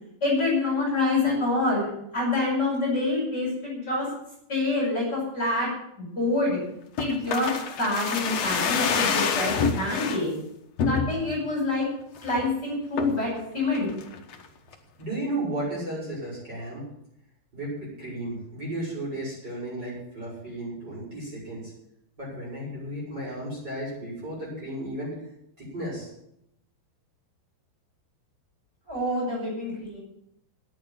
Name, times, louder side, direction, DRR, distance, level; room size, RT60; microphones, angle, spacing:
voice 1, 0.2-4.1 4.5-5.7 6.0-6.6 7.0-10.3 10.8-11.8 12.2-13.9 28.9-30.0, left 2 dB, 25° left, -5 dB, 5.8 m, -26 dB
sound 1, 7.0-10.2 10.8-11.4 11.8-11.9 12.2-12.5 13.0-13.3 13.7-14.4 14.7-14.8, left 6 dB, 65° left, 1.6 m, -27 dB
voice 2, 15.0-16.9 17.5-21.7 22.2-25.1 25.6-26.1, right 1 dB, 20° right, -6 dB, 7.7 m, -34 dB
11.0 x 9.5 x 9.4 m, 0.76 s
omnidirectional pair, 4.9 m